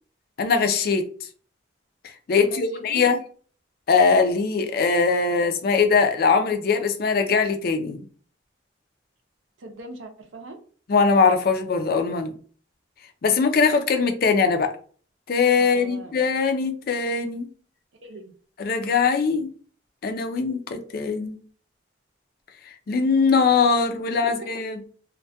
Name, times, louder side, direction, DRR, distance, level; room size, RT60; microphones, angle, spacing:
voice 1, 0.4-1.0 2.3-3.2 3.9-8.0 10.9-12.3 13.2-14.7 15.3-17.5 18.6-19.5 20.0-21.4 22.9-24.8, left 5 dB, 50° left, 0.4 m, -21 dB
voice 2, 2.4-3.0 9.6-10.6 15.6-16.2 18.0-18.3 24.0-24.5, right 2 dB, 85° right, 0.5 m, -40 dB
2.2 x 2.1 x 2.6 m
head